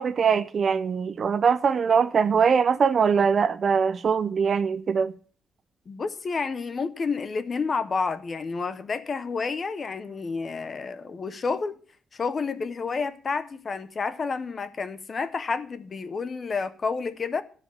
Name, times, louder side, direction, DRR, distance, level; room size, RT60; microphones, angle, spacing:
voice 1, 0.0-5.1, right 6 dB, 40° right, 0.4 m, -22 dB
voice 2, 5.9-11.8 12.1-17.4, left 4 dB, 30° left, 0.6 m, -30 dB
12.5 x 4.9 x 7.0 m
wide cardioid pair, 170°, 0 cm